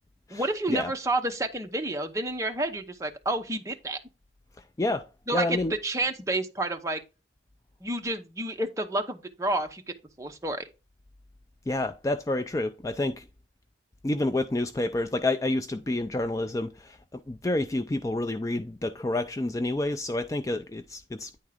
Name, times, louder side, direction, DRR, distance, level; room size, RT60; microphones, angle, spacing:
voice 1, 0.3-4.0 5.3-7.0 7.8-9.8 10.2-10.7, right 2 dB, 15° right, 0.8 m, -30 dB
voice 2, 4.8-5.7 11.7-13.3 14.0-21.3, left 2 dB, 20° left, 0.3 m, -29 dB
9.6 x 3.6 x 4.9 m
head